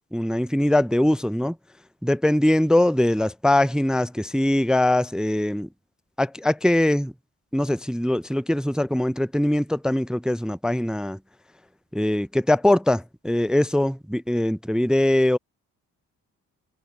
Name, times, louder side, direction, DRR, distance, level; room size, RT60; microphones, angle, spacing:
voice 1, 0.1-1.5 2.0-5.7 6.2-7.1 7.5-11.2 11.9-15.4, left 1 dB, ahead, 0.4 m, -22 dB
supercardioid pair, 55°, 39 cm